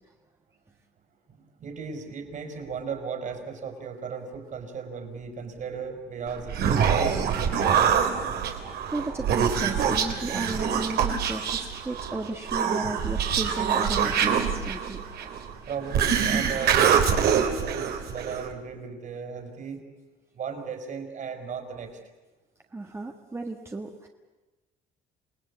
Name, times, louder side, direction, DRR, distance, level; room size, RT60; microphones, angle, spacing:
voice 1, 1.3-7.8 15.7-19.8 20.3-21.9, right 6 dB, 50° right, 5 dB, 5.1 m, -36 dB
Human voice, 6.3-18.5, right 7 dB, 70° right, 3.3 m, -25 dB
voice 2, 8.9-15.5 18.3-18.4 22.7-24.1, right 2 dB, 15° right, 3 dB, 1.6 m, -35 dB
28.5 x 18.5 x 8.5 m, 1.2 s
cardioid pair, 110°, 17 cm